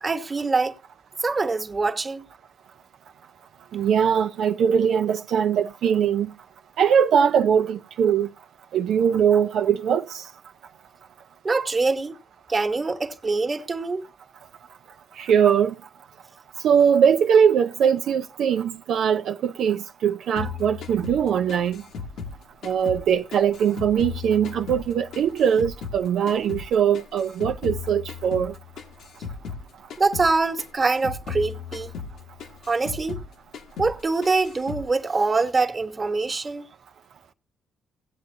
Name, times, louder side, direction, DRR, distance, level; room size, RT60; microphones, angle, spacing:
voice 1, 0.0-0.7 1.2-2.3 9.1-9.2 11.4-12.1 12.5-14.0 30.0-31.9 32.7-33.2 33.8-36.7, right 3 dB, 30° right, 1.3 m, -24 dB
voice 2, 3.7-6.3 6.8-8.3 8.7-10.2 15.2-15.7 16.6-21.8 22.6-28.5, right 8 dB, 70° right, 0.5 m, -21 dB
sound 1, 20.4-23.1 23.3-26.0 26.3-29.6 29.9-30.3 30.6-33.3 33.5-34.0 34.2-34.9, left 6 dB, 80° left, 1.5 m, -36 dB
17.5 x 8.2 x 2.7 m
cardioid pair, 90°, 0 cm